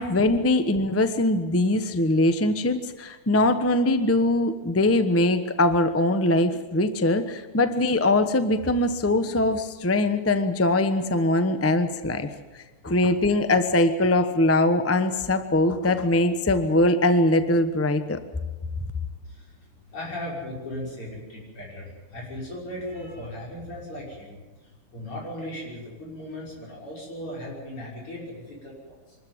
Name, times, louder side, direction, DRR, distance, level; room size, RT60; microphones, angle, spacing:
voice 1, 0.0-18.2, left 2 dB, 20° left, 10 dB, 0.3 m, -22 dB
voice 2, 19.9-24.4 24.9-29.2, left 1 dB, 80° left, -4 dB, 6.9 m, -37 dB
24.0 x 13.5 x 9.4 m, 1.2 s
omnidirectional pair, 2.4 m